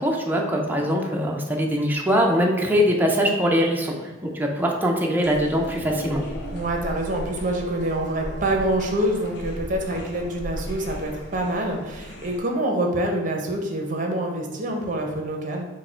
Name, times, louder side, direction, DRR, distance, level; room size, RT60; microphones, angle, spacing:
voice 1, 0.0-3.9 4.2-6.2, equal, 10° right, 0 dB, 0.5 m, -22 dB
sound 1, 5.2-12.4, equal, 65° left, 0.9 m, -36 dB
voice 2, 6.5-15.7, right 1 dB, 45° right, 2 dB, 0.7 m, -26 dB
4.7 x 2.2 x 4.3 m, 1.2 s
head